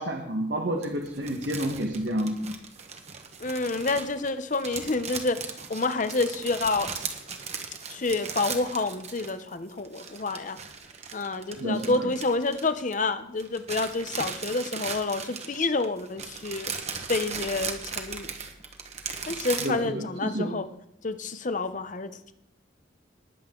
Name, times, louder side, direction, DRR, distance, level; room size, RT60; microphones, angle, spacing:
voice 1, 0.0-2.5 11.6-12.1 19.6-20.5, right 1 dB, 60° right, 2 dB, 1.4 m, -30 dB
sound 1, 0.8-9.5 9.8-13.1 13.4-19.7, right 6 dB, 35° right, 1.3 m, -37 dB
voice 2, 3.4-6.9 7.9-10.6 11.1-16.7 17.1-18.3 19.3-20.6 21.0-22.3, left 3 dB, 40° left, 11 dB, 0.8 m, -28 dB
19.5 x 7.8 x 3.9 m, 0.78 s
head